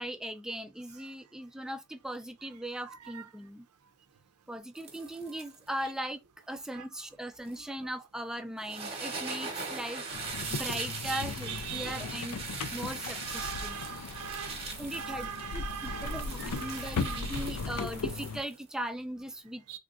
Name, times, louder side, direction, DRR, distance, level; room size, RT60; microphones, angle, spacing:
voice 1, 0.0-3.7 4.5-6.2 6.5-10.1 10.5-12.4 12.7-13.8 14.8-19.6, right 1 dB, 5° right, 0.3 m, -39 dB
voice 2, 2.9-3.2 6.7-6.8 11.1-12.0 13.2-14.6 14.9-17.2 19.7-19.8, right 8 dB, 75° right, 0.5 m, -41 dB
sound 1, 4.7-5.7 7.5-7.6 8.6-18.7, right 4 dB, 25° right, 0.9 m, -41 dB
sound 2, 10.1-18.4, left 4 dB, 90° left, 0.4 m, -38 dB
3.4 x 2.4 x 2.5 m
head